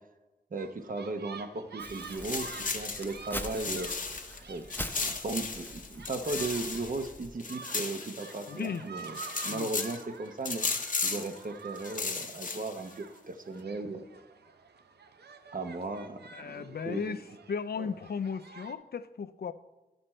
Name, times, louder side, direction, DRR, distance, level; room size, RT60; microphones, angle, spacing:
voice 1, 0.5-3.9 4.5-4.7 5.0-10.7 11.0-14.0 15.5-17.2 17.8-17.9, right 3 dB, 55° right, 7 dB, 0.8 m, -36 dB
sound 1, 0.6-18.7, right 5 dB, 90° right, 0.6 m, -49 dB
Crumpling crinkling, 1.8-7.4, left 1 dB, 10° left, 0.7 m, -44 dB
sound 2, 1.9-4.4 4.7-8.7 9.0-10.0 10.5-11.4 11.8-12.9, left 4 dB, 55° left, 0.8 m, -35 dB
voice 2, 8.5-8.8 9.5-9.7 11.1-11.2 16.3-17.2 17.5-19.5, left 6 dB, 70° left, 13 dB, 0.5 m, -36 dB
11.5 x 6.7 x 4.3 m, 1.1 s
wide cardioid pair, 65°, 17 cm